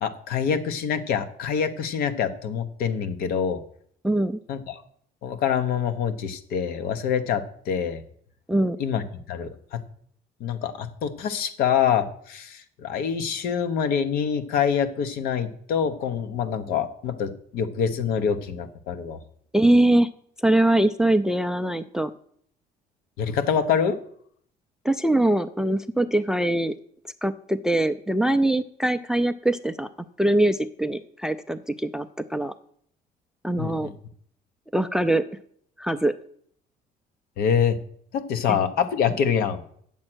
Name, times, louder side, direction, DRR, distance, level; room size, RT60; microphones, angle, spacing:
voice 1, 0.0-3.6 4.5-4.8 5.2-8.0 8.8-9.0 9.3-9.8 10.4-19.2 23.2-24.0 33.6-33.9 37.4-37.8 38.1-39.6, left 7 dB, 70° left, 10 dB, 1.0 m, -25 dB
voice 2, 4.0-4.4 8.5-8.8 19.5-20.1 20.4-22.1 24.8-26.8 27.2-29.9 30.2-32.5 33.4-33.9 34.7-35.2 35.8-36.1 38.5-38.6, right 1 dB, 5° right, 13 dB, 0.3 m, -22 dB
8.8 x 7.3 x 6.2 m, 0.63 s
cardioid pair, 135°, 16 cm